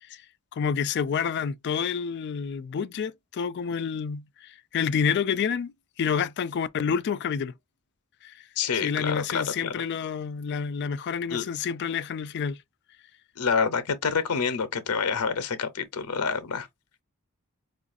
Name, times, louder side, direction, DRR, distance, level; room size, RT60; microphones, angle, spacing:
voice 1, 0.5-5.7 6.0-7.5 8.2-8.4 8.7-12.6, left 6 dB, 50° left, 0.3 m, -28 dB
voice 2, 8.6-9.8 11.3-11.4 13.4-16.7, left 5 dB, 85° left, 0.7 m, -27 dB
4.7 x 2.4 x 2.4 m
head